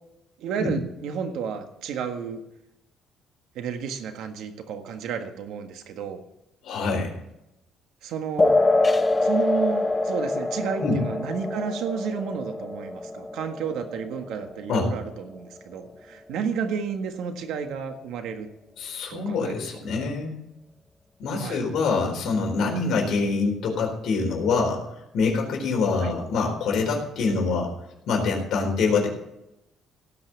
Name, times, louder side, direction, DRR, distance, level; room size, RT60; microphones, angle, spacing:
voice 1, 0.4-2.4 3.5-6.2 8.0-8.6 9.2-18.5 19.1-19.6 21.3-21.6 26.0-26.1, right 6 dB, 80° right, 6 dB, 1.6 m, -31 dB
voice 2, 6.6-7.1 10.8-11.0 14.7-14.9 18.8-20.4 21.2-24.8 25.1-27.7 28.1-29.1, left 4 dB, 65° left, 0 dB, 4.1 m, -25 dB
sound 1, 8.4-15.4, left 2 dB, 15° left, 0.6 m, -25 dB
17.0 x 5.8 x 7.0 m, 0.86 s
cardioid pair, 125°, 0 cm